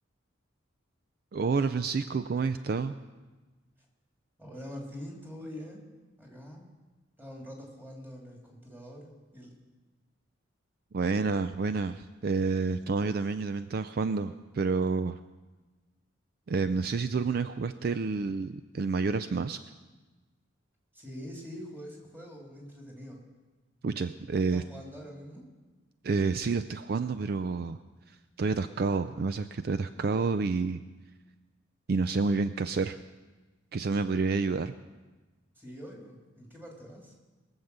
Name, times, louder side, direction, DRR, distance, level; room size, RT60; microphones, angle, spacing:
voice 1, 1.3-3.0 10.9-15.2 16.5-19.6 23.8-24.6 26.0-27.8 28.4-30.8 31.9-33.0 33.7-34.7, right 4 dB, 50° right, 11 dB, 0.4 m, -29 dB
voice 2, 4.4-5.9 6.2-6.7 7.2-9.6 20.9-23.2 24.5-25.5 35.6-37.1, equal, 10° right, -2 dB, 2.8 m, -44 dB
21.5 x 7.2 x 6.7 m, 1.2 s
head